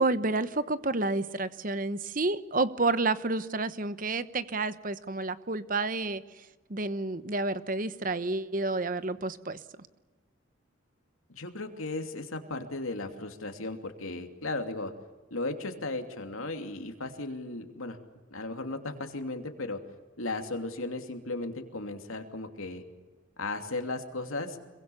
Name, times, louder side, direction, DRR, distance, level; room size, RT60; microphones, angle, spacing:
voice 1, 0.0-9.6, right 3 dB, 40° right, 13 dB, 1.0 m, -30 dB
voice 2, 11.3-14.9 15.3-18.0 18.3-19.8 20.2-22.8 23.4-24.6, left 2 dB, 90° left, 5 dB, 2.8 m, -36 dB
26.5 x 23.0 x 7.1 m, 1.2 s
head